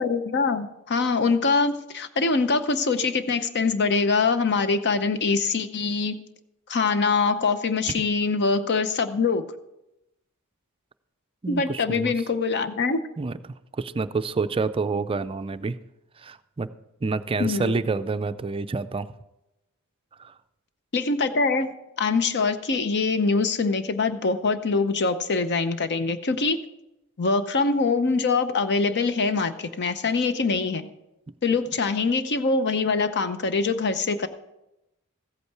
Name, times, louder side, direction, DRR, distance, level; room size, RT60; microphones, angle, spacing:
voice 1, 0.0-6.2 6.7-9.4 11.5-13.0 17.4-17.8 20.9-21.7 22.0-26.6 27.2-30.9 31.4-34.3, left 4 dB, 50° left, 11 dB, 0.8 m, -24 dB
voice 2, 11.4-12.1 13.2-13.4 13.7-15.8 16.2-16.7 17.0-19.1 20.2-20.3, right 4 dB, 25° right, 12 dB, 0.4 m, -28 dB
14.5 x 8.3 x 4.7 m, 0.91 s
head